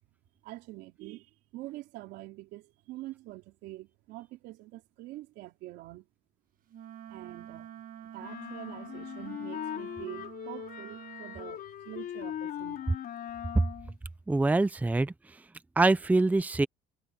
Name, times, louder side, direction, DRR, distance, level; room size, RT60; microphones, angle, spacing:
voice 1, 0.4-1.3 1.5-6.1 7.1-7.7 8.1-13.0, right 17 dB, 90° right, 3.3 m, -45 dB
Wind instrument woodwind instrument, 6.7-11.5, right 10 dB, 55° right, 1.3 m, -47 dB
sound 1, 8.2-13.9, left 10 dB, 60° left, 3.8 m, -40 dB
voice 2, 14.3-15.1 15.8-16.7, right 2 dB, 10° right, 0.6 m, -24 dB
cardioid pair, 110°, 17 cm